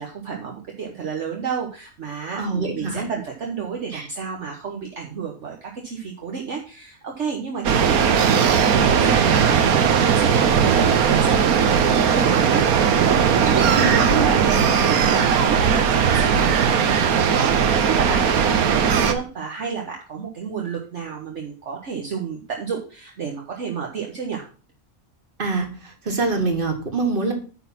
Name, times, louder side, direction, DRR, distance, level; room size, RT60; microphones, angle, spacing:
voice 1, 0.0-24.4, right 6 dB, 55° right, 0 dB, 1.4 m, -31 dB
voice 2, 2.4-3.1 3.9-4.1 13.7-14.3 25.4-27.3, right 3 dB, 40° right, 4 dB, 1.8 m, -25 dB
sound 1, 7.6-19.1, right 7 dB, 85° right, 1.3 m, -18 dB
9.6 x 4.2 x 5.8 m, 0.37 s
omnidirectional pair, 1.5 m